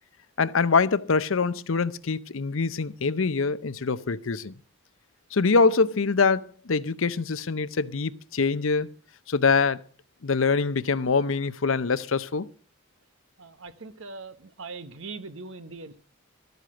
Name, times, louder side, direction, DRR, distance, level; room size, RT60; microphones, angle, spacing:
voice 1, 0.4-4.5 5.3-8.9 9.3-9.8 10.2-12.5, left 4 dB, 75° left, 0.7 m, -24 dB
voice 2, 13.4-16.0, right 4 dB, 70° right, 1.1 m, -41 dB
13.0 x 8.1 x 7.6 m
head